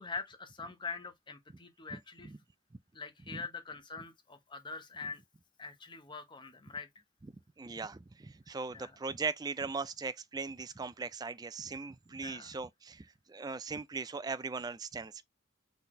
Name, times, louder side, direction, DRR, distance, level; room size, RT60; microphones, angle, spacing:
voice 1, 0.0-2.3 2.9-5.2 5.6-6.9 8.7-8.9 12.2-12.5, left 4 dB, 25° left, 1.0 m, -43 dB
voice 2, 1.9-2.4 3.3-3.4 7.6-15.2, right 4 dB, 20° right, 0.3 m, -39 dB
4.1 x 4.0 x 3.1 m
head